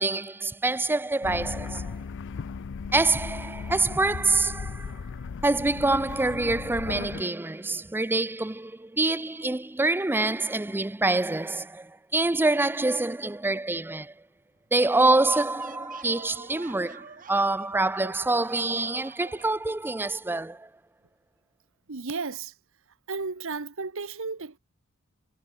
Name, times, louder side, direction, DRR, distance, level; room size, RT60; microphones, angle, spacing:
voice 1, 0.0-2.0 2.9-5.0 5.4-14.1 14.7-20.7, right 2 dB, 10° right, 0.5 m, -26 dB
sound 1, 1.2-7.2, left 5 dB, 60° left, 0.5 m, -36 dB
sound 2, 14.6-19.6, right 5 dB, 40° right, 3.6 m, -46 dB
voice 2, 21.9-22.5 23.1-24.6, right 4 dB, 65° right, 1.2 m, -33 dB
head